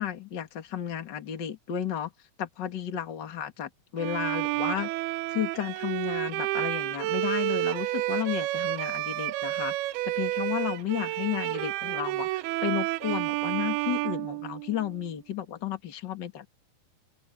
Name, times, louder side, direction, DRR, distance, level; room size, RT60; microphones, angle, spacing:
voice 1, 0.0-2.1 2.4-4.9 5.3-9.7 10.0-16.5, left 10 dB, 35° left, 2.0 m, -33 dB
Bowed string instrument, 4.0-15.0, right 18 dB, 85° right, 2.6 m, -30 dB
open air
omnidirectional pair, 4.4 m